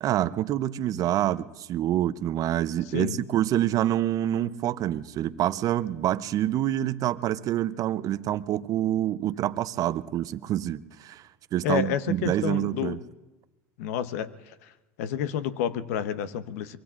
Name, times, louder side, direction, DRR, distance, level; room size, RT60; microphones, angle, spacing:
voice 1, 0.0-11.2 11.5-13.0, right 12 dB, 45° right, 15 dB, 0.6 m, -27 dB
voice 2, 11.6-13.0 13.8-14.7 15.0-16.8, left 9 dB, 75° left, 13 dB, 0.8 m, -30 dB
24.5 x 23.0 x 2.5 m, 1.1 s
supercardioid pair, 100°, 8 cm